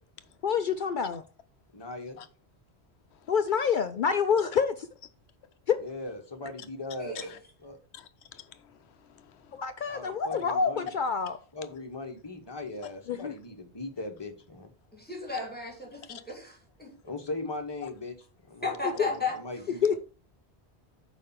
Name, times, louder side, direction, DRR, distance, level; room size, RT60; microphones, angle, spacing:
voice 1, 0.4-1.2 3.3-4.7 9.5-11.4 13.1-13.3 19.0-19.1 19.8-20.0, left 6 dB, 60° left, 0.6 m, -27 dB
voice 2, 1.7-2.2 5.8-7.3 7.6-7.8 9.9-10.9 11.5-14.7 17.0-18.1 18.5-20.0, left 2 dB, 25° left, 1.2 m, -39 dB
voice 3, 7.0-7.3 14.9-16.9 18.6-19.3, left 3 dB, 10° left, 2.4 m, -34 dB
voice 4, 7.9-9.5 10.3-10.4 16.1-16.2, left 8 dB, 80° left, 1.0 m, -45 dB
6.5 x 5.1 x 5.6 m
omnidirectional pair, 1.1 m